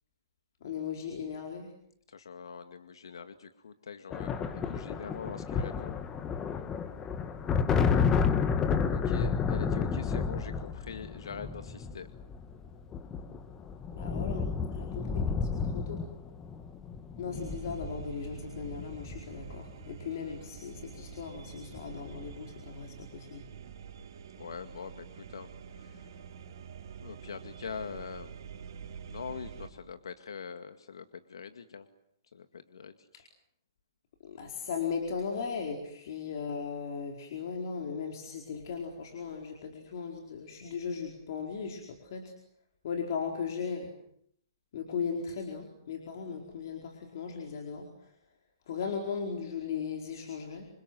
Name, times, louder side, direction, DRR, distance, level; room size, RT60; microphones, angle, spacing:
voice 1, 0.6-1.7 13.9-16.0 17.2-23.4 34.2-42.3 42.8-43.9 44.7-48.1 48.7-50.7, left 6 dB, 50° left, 2 dB, 4.6 m, -37 dB
voice 2, 2.1-6.0 8.9-12.1 24.4-25.5 25.8-26.1 27.0-28.3 29.1-31.9 32.3-33.3, left 6 dB, 90° left, 9 dB, 2.1 m, -43 dB
sound 1, 4.1-19.8 21.0-21.3 21.5-22.2, left 6 dB, 15° left, 1.4 m, -31 dB
sound 2, 17.3-29.7, right 7 dB, 55° right, 3.8 m, -47 dB
28.0 x 27.0 x 7.8 m, 0.69 s
hypercardioid pair, 165°, 2 cm